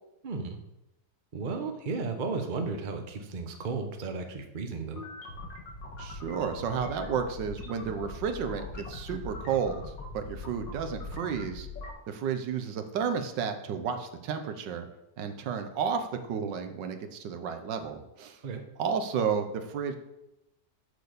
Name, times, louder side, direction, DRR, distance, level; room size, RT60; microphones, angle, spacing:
voice 1, 0.2-0.6 1.3-5.0 18.4-18.6, right 4 dB, 35° right, 5 dB, 0.8 m, -34 dB
sound 1, 4.8-11.9, left 2 dB, 90° left, 2.2 m, -41 dB
voice 2, 6.0-9.8 10.1-11.7 12.1-14.9 15.2-18.4 18.8-20.0, right 6 dB, 75° right, 7 dB, 1.5 m, -32 dB
6.8 x 6.2 x 6.7 m, 0.88 s
omnidirectional pair, 2.0 m